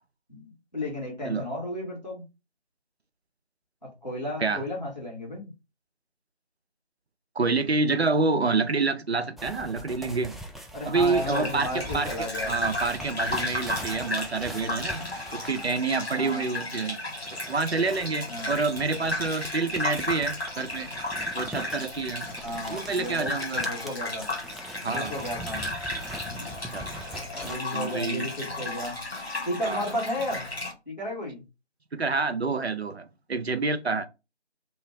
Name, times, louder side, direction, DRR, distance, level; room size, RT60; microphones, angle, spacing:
voice 1, 0.3-2.2 3.8-5.5 10.7-12.6 16.1-16.5 18.3-18.6 22.4-24.3 24.9-25.7 27.3-29.0 29.4-30.5 30.9-31.4, left 1 dB, 40° left, 1.3 m, -33 dB
voice 2, 7.4-10.4 10.8-15.1 15.3-17.0 17.5-20.9 21.3-22.3 22.7-23.7 24.8-25.1 26.7-27.0 27.7-28.3 29.7-29.9 31.9-34.1, right 4 dB, 70° right, 0.5 m, -28 dB
sound 1, 9.4-15.9 17.2-27.6, equal, ahead, 0.3 m, -42 dB
Gurgling / Bathtub (filling or washing), 11.0-30.7, left 2 dB, 60° left, 1.1 m, -34 dB
2.7 x 2.2 x 3.1 m
figure-of-eight pair, 175°, 34 cm